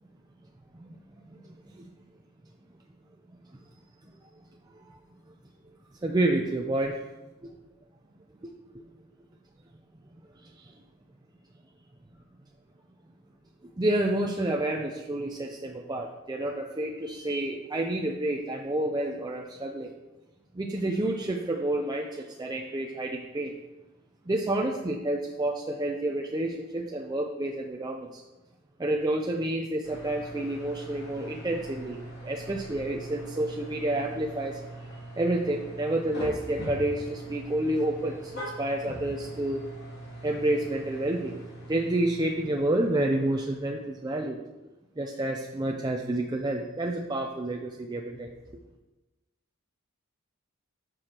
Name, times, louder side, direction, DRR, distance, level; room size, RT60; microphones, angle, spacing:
voice 1, 6.0-7.0 7.4-7.5 8.4-8.5 10.4-10.7 13.8-19.9 20.5-23.5 24.3-28.2 28.8-34.9 35.2-39.6 40.2-41.4 41.7-44.4 45.0-48.3, right 1 dB, 20° right, 1 dB, 0.5 m, -29 dB
sound 1, 29.8-44.2, right 1 dB, 55° left, 2.6 m, -42 dB
12.5 x 6.3 x 2.9 m, 1.1 s
head